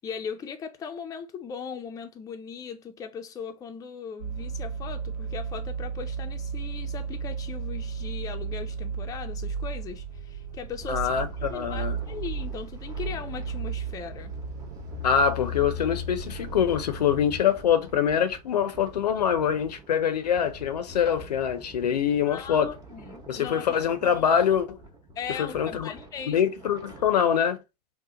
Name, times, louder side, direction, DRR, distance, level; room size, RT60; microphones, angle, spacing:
voice 1, 0.0-11.1 11.5-14.3 22.3-23.7 24.0-24.3 25.2-26.4, left 6 dB, 15° left, 0.4 m, -38 dB
sound 1, 4.2-17.4, right 4 dB, 80° right, 0.7 m, -34 dB
sound 2, 10.8-27.2, right 2 dB, 20° right, 0.9 m, -47 dB
voice 2, 10.9-12.0 15.0-22.7 23.3-24.8 25.4-25.9 26.3-27.6, left 8 dB, 75° left, 0.5 m, -24 dB
2.8 x 2.1 x 3.7 m
figure-of-eight pair, 90°, 21 cm